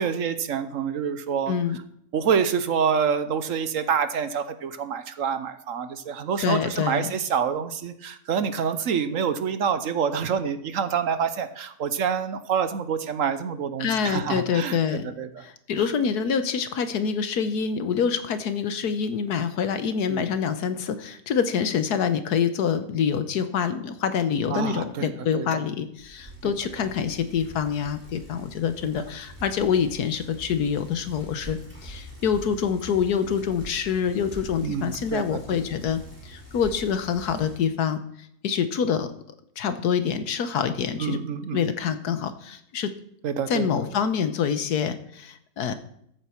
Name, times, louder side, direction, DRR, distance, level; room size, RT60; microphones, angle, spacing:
voice 1, 0.0-1.5 2.1-14.8 15.0-15.3 20.1-20.2 24.5-25.1 25.3-25.5 34.6-35.4 41.0-41.6 43.2-43.7, right 7 dB, 60° right, 11 dB, 1.2 m, -27 dB
voice 2, 1.5-1.8 6.4-7.1 13.8-15.0 15.4-38.0 38.4-39.1 39.6-41.2 41.5-42.9 43.5-45.7, left 7 dB, 90° left, 10 dB, 1.5 m, -26 dB
Bicycle, 26.0-37.7, equal, 5° right, 4.7 m, -44 dB
14.0 x 8.7 x 4.5 m, 0.71 s
omnidirectional pair, 1.6 m